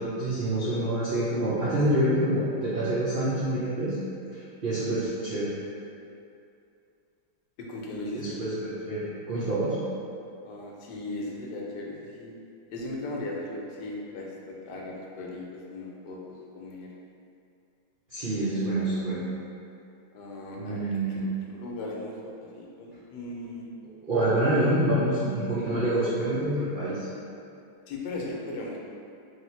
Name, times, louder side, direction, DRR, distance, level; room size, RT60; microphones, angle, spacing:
voice 1, 0.0-4.0 4.3-5.5 8.1-9.8 18.1-19.2 20.6-21.2 24.0-27.1, right 1 dB, 80° right, -10 dB, 0.4 m, -27 dB
voice 2, 7.6-8.4 10.4-12.3 12.7-16.9 20.1-23.6 27.9-28.8, left 2 dB, 75° left, -2 dB, 1.2 m, -38 dB
3.3 x 2.8 x 4.4 m, 2.5 s
omnidirectional pair, 1.9 m